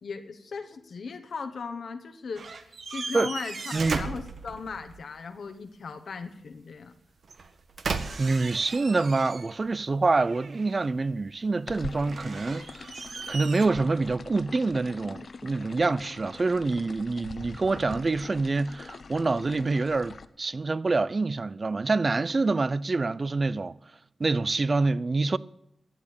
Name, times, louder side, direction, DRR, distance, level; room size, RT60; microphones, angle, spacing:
voice 1, 0.0-6.9, left 5 dB, 80° left, 1.2 m, -38 dB
sound 1, 2.3-5.0 7.2-9.7 10.1-11.0 12.0-13.7, right 4 dB, 70° right, 1.3 m, -37 dB
voice 2, 3.7-4.0 8.2-12.9 13.3-23.8 24.2-25.4, right 3 dB, 45° right, 0.5 m, -26 dB
sound 2, 11.7-20.3, left 4 dB, 60° left, 0.8 m, -43 dB
13.5 x 8.5 x 8.7 m
cardioid pair, 70°, 0 cm